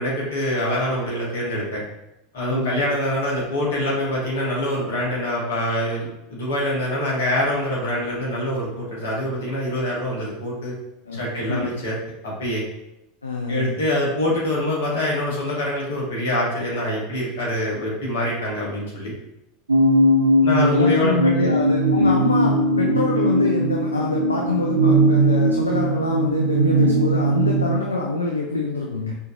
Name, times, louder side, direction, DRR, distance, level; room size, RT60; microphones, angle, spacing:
voice 1, 0.0-1.8 2.3-10.7 11.1-12.0 12.2-12.6 13.5-19.1 20.4-21.5, left 1 dB, 65° left, -4 dB, 1.5 m, -25 dB
voice 2, 2.5-2.8 11.1-11.7 13.2-13.7 20.5-29.2, left 3 dB, 80° left, -1 dB, 0.4 m, -26 dB
sound 1, 19.7-27.9, right 1 dB, 80° right, 0.4 m, -19 dB
5.5 x 3.0 x 2.5 m, 0.88 s
figure-of-eight pair, 80°, 0 cm